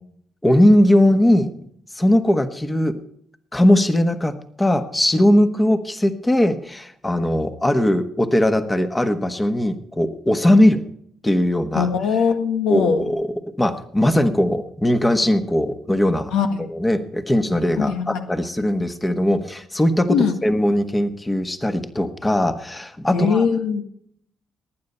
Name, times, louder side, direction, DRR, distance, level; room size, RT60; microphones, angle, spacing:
voice 1, 0.4-1.5 2.0-3.0 3.5-10.8 11.2-11.9 12.7-16.3 16.6-20.2 20.4-23.5, left 1 dB, 15° left, 10 dB, 1.3 m, -19 dB
voice 2, 11.7-13.0 16.3-16.7 17.8-18.2 20.1-20.3 23.1-23.8, left 6 dB, 90° left, 7 dB, 1.7 m, -21 dB
19.0 x 9.6 x 5.6 m, 0.67 s
cardioid pair, 90°, 0 cm